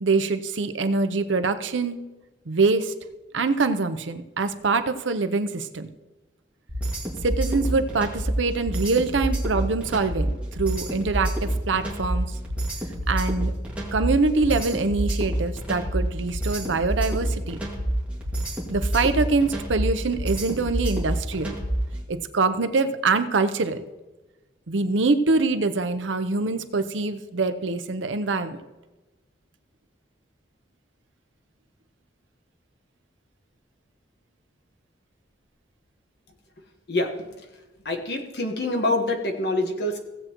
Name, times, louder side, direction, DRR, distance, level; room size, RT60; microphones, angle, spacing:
voice 1, 0.0-2.0 2.5-2.9 3.3-5.9 7.2-12.3 13.1-13.5 13.9-17.6 18.7-21.5 22.1-23.8 24.7-28.6, right 3 dB, 90° right, 9 dB, 0.7 m, -24 dB
sound 1, 6.7-21.9, right 1 dB, 5° right, 1.9 m, -28 dB
voice 2, 36.9-37.5 37.8-40.0, left 2 dB, 60° left, 3 dB, 1.4 m, -26 dB
16.5 x 7.8 x 3.0 m, 1.1 s
head